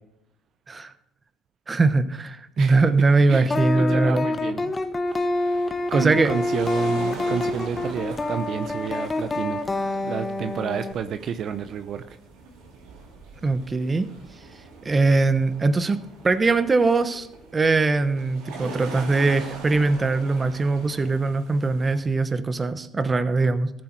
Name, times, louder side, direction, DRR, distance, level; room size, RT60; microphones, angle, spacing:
voice 1, 1.7-4.3 5.9-6.3 13.4-14.1 14.8-16.0 16.2-17.3 17.5-23.7, right 3 dB, 30° right, 11 dB, 1.0 m, -21 dB
sound 1, 3.5-10.9, left 2 dB, 25° left, 1.0 m, -26 dB
voice 2, 3.7-4.7 5.4-9.6 9.9-12.2, right 7 dB, 55° right, 10 dB, 0.7 m, -30 dB
sound 2, 5.0-22.0, right 3 dB, 85° right, 3.2 m, -42 dB
14.0 x 7.8 x 4.7 m, 0.81 s
supercardioid pair, 75°, 0 cm